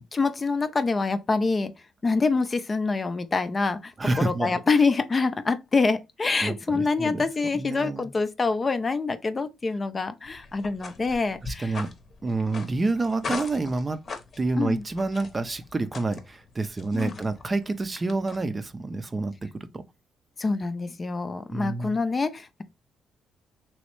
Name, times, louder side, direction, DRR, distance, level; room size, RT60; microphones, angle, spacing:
voice 1, 0.0-1.7 2.0-11.8 14.6-14.8 16.9-17.1 20.4-22.6, left 4 dB, 30° left, 0.4 m, -26 dB
voice 2, 4.0-4.6 6.4-7.3 7.5-8.1 11.4-11.9 12.2-14.0 14.4-19.7 21.5-22.0, right 3 dB, 25° right, 0.5 m, -28 dB
sound 1, 10.2-18.7, left 4 dB, 50° left, 0.8 m, -41 dB
3.1 x 3.0 x 3.0 m
cardioid pair, 90°, 0 cm